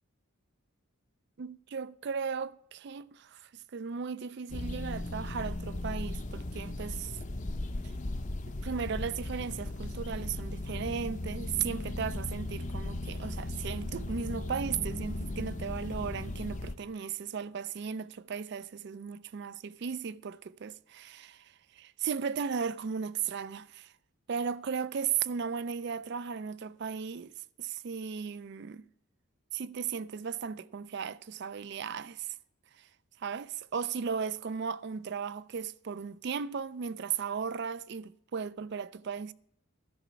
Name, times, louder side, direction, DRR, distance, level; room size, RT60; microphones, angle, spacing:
voice 1, 1.4-7.2 8.5-23.9 24.3-27.3 27.6-28.9 29.5-32.4 32.8-32.9 33.2-39.3, right 6 dB, 50° right, 0.4 m, -36 dB
sound 1, 4.5-16.7, left 2 dB, 35° left, 0.6 m, -37 dB
12.5 x 5.9 x 8.1 m
head